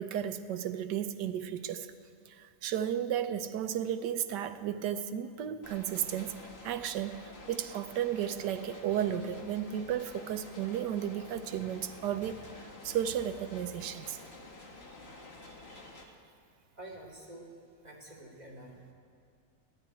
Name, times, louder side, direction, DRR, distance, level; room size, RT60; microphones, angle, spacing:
voice 1, 0.0-1.9 2.3-12.4 12.8-14.2 15.7-15.8, right 10 dB, 85° right, 10 dB, 1.3 m, -34 dB
sound 1, 5.6-16.0, left 2 dB, 40° left, 1.5 m, -50 dB
voice 2, 16.7-17.5 17.8-18.9, right 1 dB, 25° right, -3 dB, 2.7 m, -48 dB
13.0 x 11.0 x 9.1 m, 2.2 s
omnidirectional pair, 1.8 m